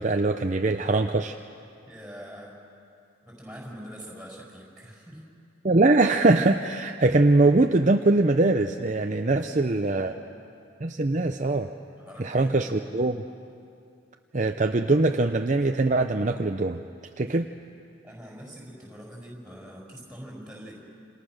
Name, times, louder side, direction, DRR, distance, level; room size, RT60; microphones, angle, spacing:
voice 1, 0.0-1.4 5.6-10.1 10.8-11.7 12.2-13.2 14.3-16.8 17.2-17.5, right 2 dB, 35° right, 5 dB, 0.6 m, -22 dB
voice 2, 1.9-2.5 3.3-5.2 9.2-10.2 12.0-13.0 18.0-20.8, equal, 5° right, -3 dB, 6.4 m, -44 dB
29.0 x 28.0 x 6.5 m, 2.5 s
head